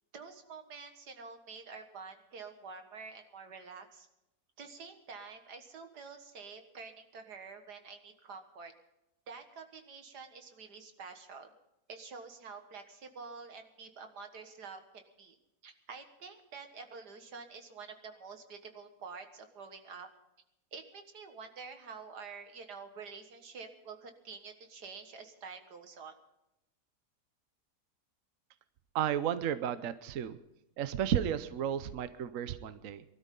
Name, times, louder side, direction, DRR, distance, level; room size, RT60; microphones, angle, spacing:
voice 1, 0.1-4.1 4.6-8.7 9.3-11.5 11.9-15.4 15.6-20.1 20.7-26.2, right 5 dB, 85° right, 6 dB, 2.2 m, -48 dB
voice 2, 28.9-30.4 30.8-33.0, right 9 dB, 60° right, 12 dB, 1.0 m, -33 dB
23.5 x 13.0 x 3.8 m, 0.89 s
omnidirectional pair, 1.7 m